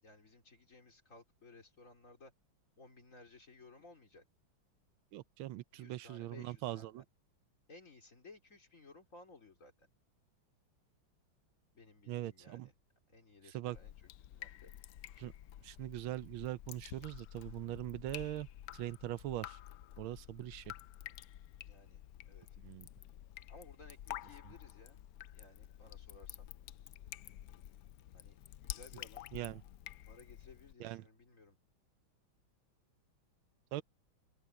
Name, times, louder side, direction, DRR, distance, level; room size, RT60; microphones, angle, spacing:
voice 1, 0.0-2.3 2.8-4.3 5.7-7.0 7.7-9.9 11.7-12.7 13.1-14.7 21.6-22.0 22.3-22.5 23.5-25.0 25.3-26.5 28.1-28.4 28.6-29.3 30.1-31.6, left 3 dB, 40° left, 3.7 m, -58 dB
voice 2, 5.1-7.0 12.1-12.7 13.5-13.8 15.2-15.3 15.6-18.5 18.7-19.6 20.0-20.6 22.6-22.9 29.3-29.6 30.8-31.0 33.7-33.8, right 15 dB, 90° right, 1.5 m, -41 dB
Drip, 13.7-30.7, left 12 dB, 85° left, 0.8 m, -50 dB
open air
omnidirectional pair, 2.2 m